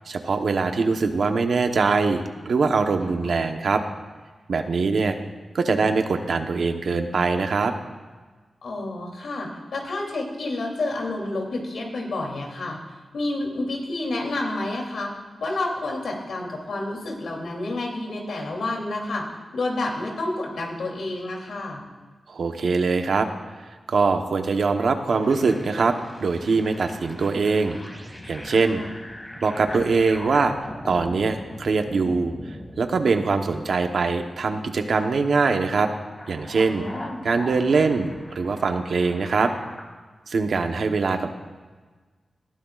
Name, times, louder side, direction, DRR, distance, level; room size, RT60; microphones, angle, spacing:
voice 1, 0.1-3.8 4.5-5.2 5.5-7.7 22.3-23.3 23.9-27.8 28.3-28.8 29.4-30.5 30.8-32.3 32.8-35.9 36.3-36.8 37.2-39.5 40.3-41.3, right 4 dB, 75° right, 6 dB, 1.0 m, -22 dB
voice 2, 8.6-12.8 13.1-15.1 15.4-19.3 19.5-21.8 28.6-28.9 36.7-37.2, left 2 dB, 90° left, -1 dB, 2.9 m, -29 dB
sound 1, 25.1-39.8, left 1 dB, 20° left, 2.2 m, -41 dB
20.0 x 14.0 x 2.4 m, 1.4 s
wide cardioid pair, 80°, 0 cm